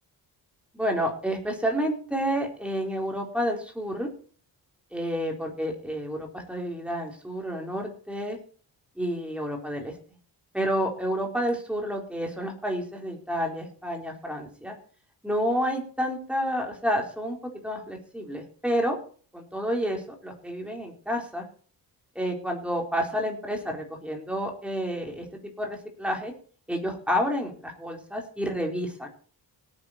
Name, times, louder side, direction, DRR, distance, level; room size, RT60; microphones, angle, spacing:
voice 1, 0.7-4.1 4.9-8.4 9.0-9.9 10.5-14.7 15.2-19.0 19.3-21.4 22.1-26.3 26.7-29.1, equal, 5° right, 1 dB, 4.3 m, -30 dB
18.0 x 9.8 x 4.4 m, 0.43 s
cardioid pair, 130°, 39 cm